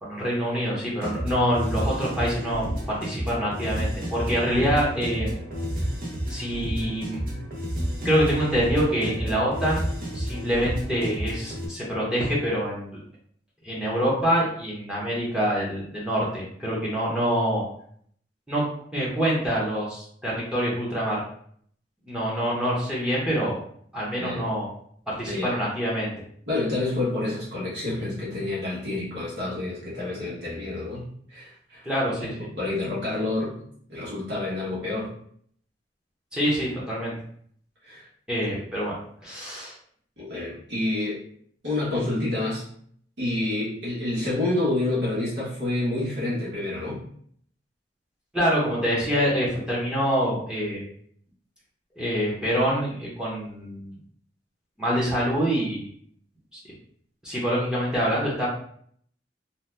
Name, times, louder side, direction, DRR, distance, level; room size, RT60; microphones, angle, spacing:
voice 1, 0.0-5.4 6.3-7.2 8.0-9.9 10.1-12.9 13.6-17.6 18.5-18.6 18.9-21.2 22.0-23.6 23.9-24.7 25.1-26.1 31.8-32.3 36.3-37.1 38.3-39.7 48.3-50.8 52.0-53.9 54.8-55.9 56.5-56.6 57.2-58.5, equal, 5° right, -6 dB, 0.7 m, -25 dB
sound 1, 1.0-11.7, equal, 50° right, 0.7 m, -31 dB
voice 2, 25.3-25.6 26.5-31.8 32.2-33.5 33.9-35.1 37.8-38.0 38.5-38.6 40.2-41.2 41.6-42.6 43.2-47.0, left 2 dB, 70° right, -8 dB, 1.1 m, -28 dB
2.7 x 2.2 x 3.2 m, 0.62 s
head